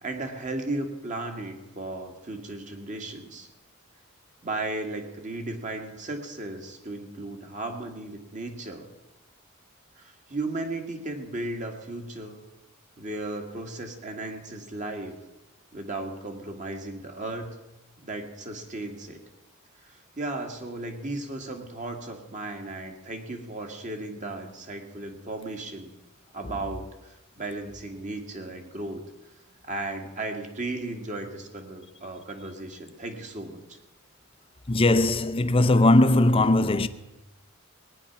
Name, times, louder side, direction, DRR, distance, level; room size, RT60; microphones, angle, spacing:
voice 1, 0.0-3.5 4.4-8.9 10.0-12.4 13.0-15.2 15.7-17.6 18.0-19.2 19.9-25.9 26.3-29.0 29.6-33.8, right 2 dB, 35° right, 1.8 m, -35 dB
voice 2, 34.7-36.9, left 2 dB, 25° left, 0.6 m, -19 dB
19.0 x 9.6 x 5.9 m
head